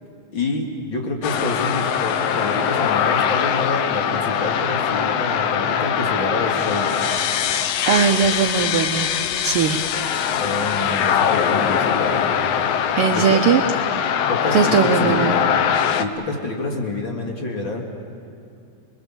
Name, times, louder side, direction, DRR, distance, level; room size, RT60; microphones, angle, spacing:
voice 1, 0.3-6.9 10.4-12.4 13.1-13.4 14.3-15.4 16.0-17.9, left 2 dB, 40° left, 1 dB, 2.6 m, -27 dB
sound 1, 1.2-16.1, left 8 dB, 70° left, 1.5 m, -22 dB
voice 2, 7.9-9.8 12.9-13.6 14.5-15.3, right 7 dB, 90° right, 4 dB, 1.2 m, -19 dB
28.5 x 21.5 x 7.2 m, 2.5 s
omnidirectional pair, 3.6 m